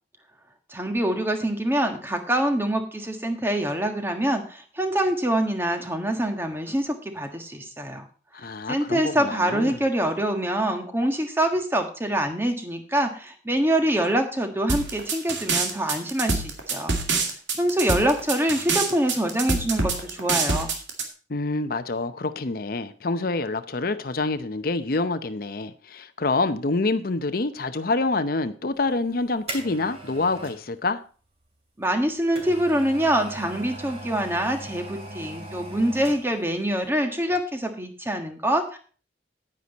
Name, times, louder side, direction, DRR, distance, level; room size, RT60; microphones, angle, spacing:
voice 1, 0.7-8.1 8.7-17.0 17.5-20.7 31.8-38.8, right 1 dB, 15° right, 1.5 m, -25 dB
voice 2, 8.3-9.8 21.3-31.0, left 3 dB, 50° left, 0.7 m, -27 dB
sound 1, 14.7-21.0, right 4 dB, 90° right, 2.1 m, -25 dB
sound 2, 28.9-30.6 31.8-36.5 36.8-36.9, right 1 dB, 35° right, 2.9 m, -39 dB
10.0 x 9.7 x 4.1 m
head